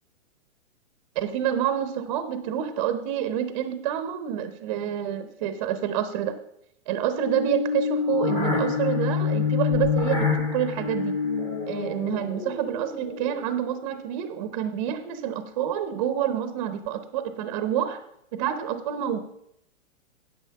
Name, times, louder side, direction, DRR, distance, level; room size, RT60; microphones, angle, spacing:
voice 1, 1.1-6.4 6.9-11.2 11.7-18.0 18.3-19.2, right 9 dB, 25° right, 10 dB, 0.7 m, -28 dB
sound 1, 7.2-13.6, left 5 dB, 10° left, 0.8 m, -27 dB
10.0 x 8.0 x 5.7 m, 0.75 s
hypercardioid pair, 165°, 39 cm